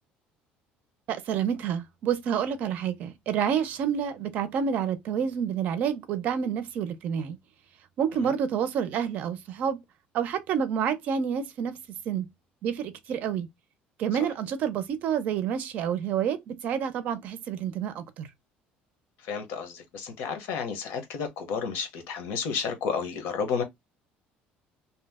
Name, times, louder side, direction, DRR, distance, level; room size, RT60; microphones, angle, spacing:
voice 1, 1.1-7.4 8.0-9.8 10.1-11.7 12.1-12.3 12.6-13.5 14.0-18.3, right 8 dB, 50° right, 0.5 m, -28 dB
voice 2, 19.3-23.6, left 6 dB, 70° left, 0.8 m, -31 dB
2.8 x 2.0 x 3.4 m
cardioid pair, 170°, 4 cm